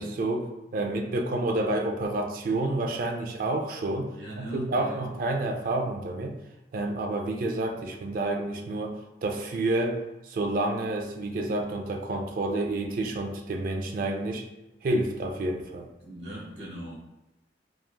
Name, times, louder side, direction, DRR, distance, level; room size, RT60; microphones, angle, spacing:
voice 1, 0.0-4.1 4.4-6.4 6.7-9.0 9.2-14.4 14.8-15.9, right 2 dB, 50° right, 3 dB, 0.3 m, -29 dB
voice 2, 4.2-5.2 16.0-17.0, right 1 dB, 70° right, -5 dB, 1.1 m, -39 dB
3.0 x 2.3 x 2.2 m, 1.0 s
head